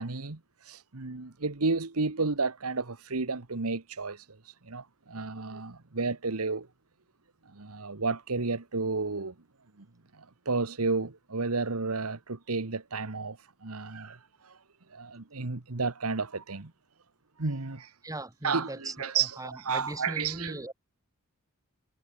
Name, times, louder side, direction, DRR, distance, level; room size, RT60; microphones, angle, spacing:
voice 1, 0.0-4.4 4.6-6.7 7.4-9.3 9.8-9.9 10.1-14.6 14.9-16.7 17.4-17.9 18.4-20.6, right 4 dB, 90° right, 1.5 m, -32 dB
voice 2, 18.0-20.7, right 2 dB, 15° right, 2.7 m, -39 dB
head